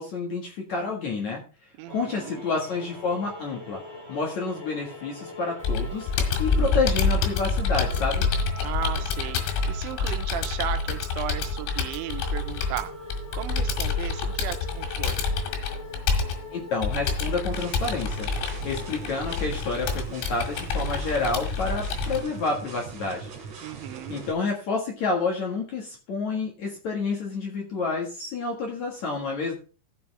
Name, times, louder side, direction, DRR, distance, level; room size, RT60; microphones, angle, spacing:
voice 1, 0.0-1.4 1.9-3.8 4.1-6.1 6.4-8.3 16.5-18.3 18.6-23.3 24.1-29.5, left 4 dB, 55° left, -1 dB, 2.2 m, -29 dB
voice 2, 1.8-2.4 8.6-12.9 13.3-15.4 23.6-24.2, right 12 dB, 85° right, 9 dB, 3.1 m, -35 dB
sound 1, 1.9-19.4, left 2 dB, 10° left, 4.1 m, -43 dB
Computer keyboard, 5.6-22.2, left 4 dB, 90° left, 4.1 m, -27 dB
sound 2, 17.5-24.3, right 5 dB, 45° right, 3.0 m, -40 dB
14.5 x 6.9 x 3.4 m, 0.36 s
omnidirectional pair, 5.3 m